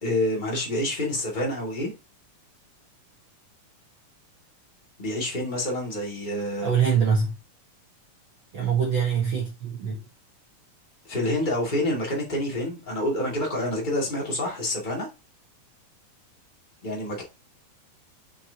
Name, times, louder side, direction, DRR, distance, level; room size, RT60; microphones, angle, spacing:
voice 1, 0.0-1.9 5.0-6.7 11.0-15.1 16.8-17.2, left 1 dB, 15° left, 1.8 m, -27 dB
voice 2, 6.6-7.4 8.5-10.0, right 6 dB, 70° right, 1.1 m, -24 dB
6.4 x 5.9 x 2.8 m
omnidirectional pair, 3.9 m